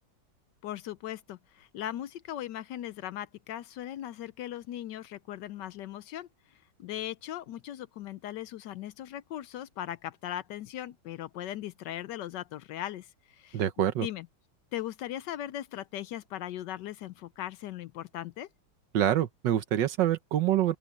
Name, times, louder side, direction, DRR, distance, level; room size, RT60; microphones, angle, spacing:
voice 1, 0.6-6.3 6.8-13.6 14.0-14.3 14.7-18.5, left 12 dB, 75° left, 1.2 m, -38 dB
voice 2, 13.5-14.1 18.9-20.7, right 11 dB, 70° right, 1.5 m, -26 dB
open air
omnidirectional pair, 2.1 m